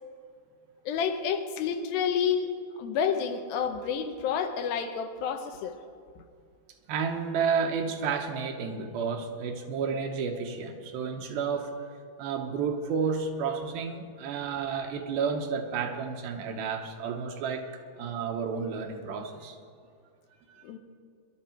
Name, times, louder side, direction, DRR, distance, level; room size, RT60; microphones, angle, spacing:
voice 1, 0.9-2.5 2.8-5.8 20.6-20.8, left 7 dB, 75° left, 6 dB, 2.7 m, -29 dB
voice 2, 6.9-11.9 12.2-19.6 20.5-20.6, right 6 dB, 80° right, 4 dB, 2.8 m, -31 dB
21.5 x 11.5 x 4.5 m, 2.2 s
omnidirectional pair, 4.4 m